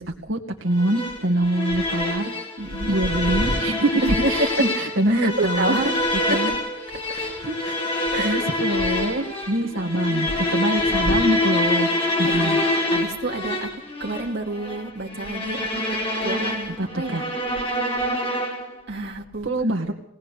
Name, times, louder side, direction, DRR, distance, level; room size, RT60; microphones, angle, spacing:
voice 1, 0.0-2.3 2.8-3.9 4.3-6.0 6.3-6.6 6.9-11.9 12.2-12.6 16.8-17.2 19.4-19.9, right 1 dB, 75° right, 1 dB, 2.1 m, -25 dB
sound 1, 0.8-18.8, left 1 dB, 30° left, 5.5 m, -26 dB
voice 2, 2.6-3.0 3.2-3.6 4.0-4.5 5.1-5.9 6.3-6.6 8.1-8.4 9.8-10.5 11.1-11.2 12.2-12.6 12.9-13.7 14.0-17.2 18.9-19.5, right 2 dB, 55° right, 0 dB, 2.7 m, -28 dB
20.5 x 19.5 x 6.7 m, 0.70 s
head